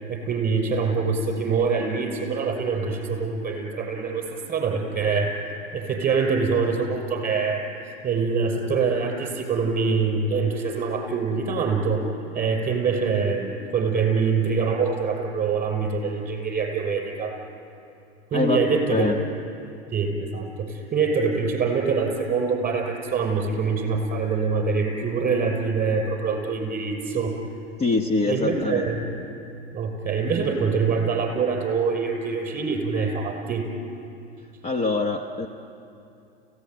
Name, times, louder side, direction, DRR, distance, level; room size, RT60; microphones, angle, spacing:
voice 1, 0.1-5.4 5.7-7.6 8.0-12.0 12.3-17.3 18.3-19.1 19.9-27.3 28.3-29.1 29.7-33.7, right 5 dB, 25° right, 4 dB, 5.8 m, -24 dB
voice 2, 18.3-18.6 18.9-19.2 27.8-28.8 34.6-35.5, left 3 dB, 20° left, 5 dB, 1.1 m, -24 dB
30.0 x 17.0 x 9.2 m, 2.7 s
hypercardioid pair, 120°, 31 cm